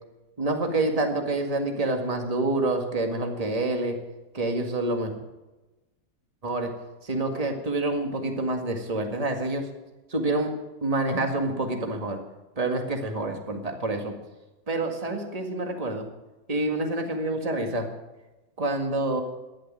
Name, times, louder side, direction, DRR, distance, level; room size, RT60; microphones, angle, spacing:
voice 1, 0.4-4.0 4.3-5.1 6.4-6.7 7.0-9.6 10.1-10.5 10.8-12.2 12.6-14.1 14.7-16.1 16.5-17.9 18.6-19.2, right 2 dB, 20° right, 3 dB, 1.9 m, -27 dB
13.0 x 11.0 x 7.4 m, 1.1 s
omnidirectional pair, 1.8 m